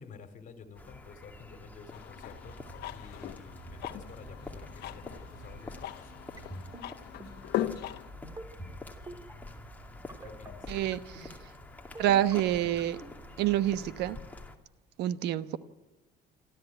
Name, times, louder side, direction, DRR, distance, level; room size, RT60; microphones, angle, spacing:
voice 1, 0.0-2.6 2.9-6.1 10.2-10.7, left 5 dB, 50° left, 9 dB, 2.8 m, -51 dB
sound 1, 0.8-14.6, left 2 dB, 10° left, 2.5 m, -47 dB
sound 2, 1.9-8.1, left 13 dB, 75° left, 1.2 m, -39 dB
sound 3, 6.4-6.8 7.2-7.5 8.2-8.7 9.1-9.3 10.1-10.5 10.9-11.3 11.9-12.3 12.8-13.1, right 1 dB, 20° right, 3.2 m, -43 dB
voice 2, 10.7-11.3 12.0-13.0 13.4-14.2 15.0-15.6, right 12 dB, 80° right, 13 dB, 1.1 m, -27 dB
27.0 x 13.5 x 9.0 m, 1.2 s
cardioid pair, 110°, 17 cm